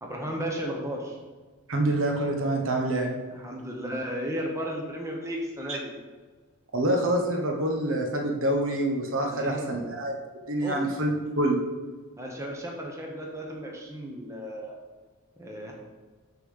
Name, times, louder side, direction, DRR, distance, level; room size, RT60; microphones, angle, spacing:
voice 1, 0.0-1.2 3.3-5.9 9.3-9.8 10.6-10.8 12.2-14.8 15.4-15.7, equal, 15° right, -1 dB, 0.9 m, -34 dB
voice 2, 1.7-3.1 5.7-5.8 6.7-10.1 10.5-11.6, right 1 dB, 60° right, 2 dB, 1.1 m, -26 dB
6.9 x 3.8 x 6.3 m, 1.4 s
head